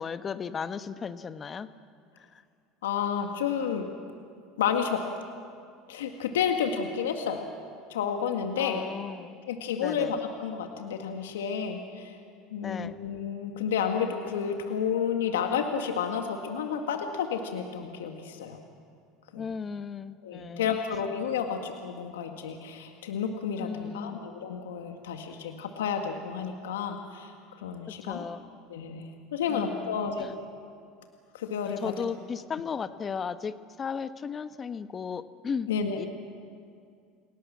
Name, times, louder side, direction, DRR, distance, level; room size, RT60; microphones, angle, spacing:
voice 1, 0.0-1.7 8.6-9.4 9.8-10.2 12.6-13.0 19.4-20.8 23.6-24.2 28.1-28.4 29.5-30.3 31.7-35.7 36.0-36.1, left 6 dB, 30° left, 11 dB, 1.2 m, -35 dB
voice 2, 2.8-3.9 4.6-5.0 5.9-7.4 7.9-8.8 9.5-12.2 12.5-18.6 19.3-19.5 20.2-27.3 27.6-28.2 28.7-30.3 31.3-32.0 35.7-36.1, left 7 dB, 85° left, 4 dB, 1.8 m, -31 dB
29.5 x 18.0 x 7.4 m, 2.2 s
hypercardioid pair, 85°, 0 cm